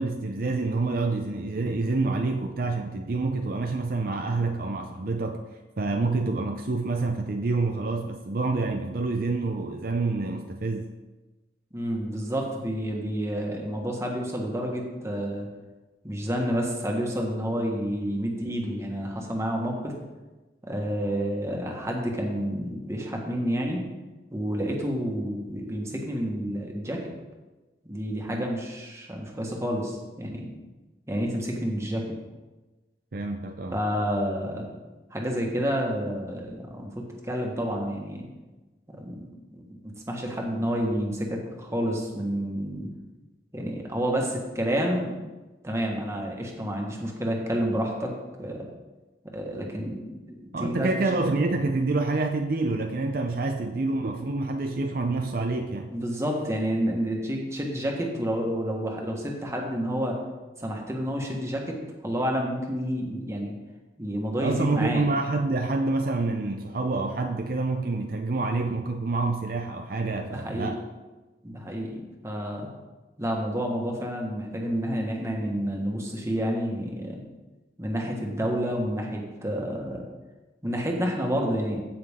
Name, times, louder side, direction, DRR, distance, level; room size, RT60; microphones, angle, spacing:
voice 1, 0.0-5.4 5.8-10.9 28.3-28.4 33.1-33.7 50.5-55.9 64.4-70.8, right 3 dB, 55° right, 5 dB, 0.6 m, -27 dB
voice 2, 11.7-15.5 16.0-19.9 20.7-23.8 24.3-27.0 27.9-30.5 31.1-32.0 33.7-34.7 35.1-38.3 39.0-42.9 43.5-45.2 45.6-48.1 48.4-48.6 49.3-50.9 55.9-60.2 60.6-63.6 64.0-65.1 70.3-70.7 71.4-72.7 73.2-77.2 77.8-80.0 80.6-81.8, equal, 15° right, 0 dB, 1.4 m, -29 dB
15.5 x 5.9 x 3.6 m, 1.2 s
head